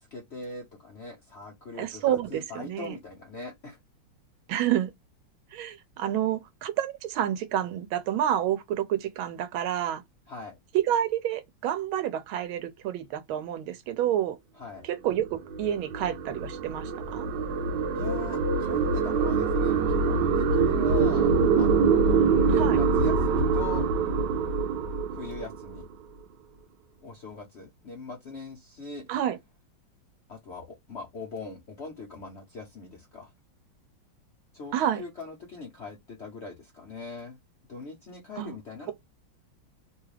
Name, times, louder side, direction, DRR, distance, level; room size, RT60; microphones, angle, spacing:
voice 1, 0.0-3.8 10.3-10.6 14.6-14.8 17.9-21.3 21.6-22.2 22.5-23.9 25.1-25.9 27.0-29.1 30.3-33.3 34.5-37.4 37.7-38.9, left 4 dB, 70° left, 0.6 m, -41 dB
voice 2, 1.8-3.0 4.5-4.9 5.5-10.0 10.7-14.4 14.8-17.3 22.6-22.8 29.1-29.4 34.7-35.0 38.4-38.5, right 11 dB, 85° right, 1.4 m, -29 dB
sound 1, 15.3-25.9, right 5 dB, 70° right, 1.2 m, -24 dB
3.3 x 2.3 x 3.1 m
omnidirectional pair, 2.2 m